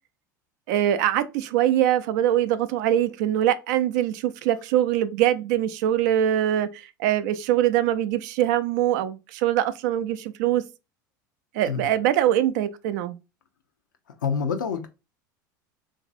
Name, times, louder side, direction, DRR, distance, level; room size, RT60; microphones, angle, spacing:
voice 1, 0.7-10.6 11.5-13.2, right 12 dB, 65° right, 0.4 m, -23 dB
voice 2, 14.2-14.9, left 6 dB, 85° left, 0.5 m, -26 dB
3.1 x 2.5 x 2.5 m
hypercardioid pair, 85°, 10 cm